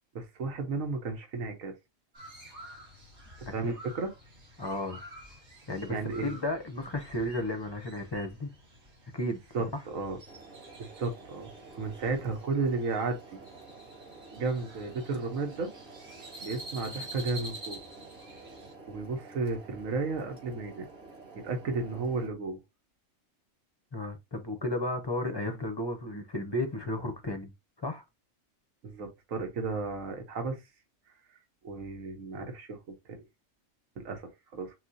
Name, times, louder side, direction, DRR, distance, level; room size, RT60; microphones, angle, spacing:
voice 1, 0.1-1.7 3.4-4.1 5.9-6.4 9.5-10.2 10.8-11.5 11.8-13.5 14.3-15.7 16.4-17.8 18.9-20.9 21.3-22.6 28.8-30.6 31.6-33.2 34.0-34.7, right 3 dB, 85° right, 1.4 m, -33 dB
Crow, 2.1-18.7, right 1 dB, 55° right, 1.9 m, -49 dB
voice 2, 3.5-3.8 4.6-5.0 5.7-8.5 9.1-9.4 23.9-27.5 27.8-28.0, left 1 dB, 30° left, 0.5 m, -33 dB
sound 1, 10.3-22.3, right 4 dB, 40° right, 3.1 m, -50 dB
6.0 x 2.5 x 2.7 m
omnidirectional pair, 1.4 m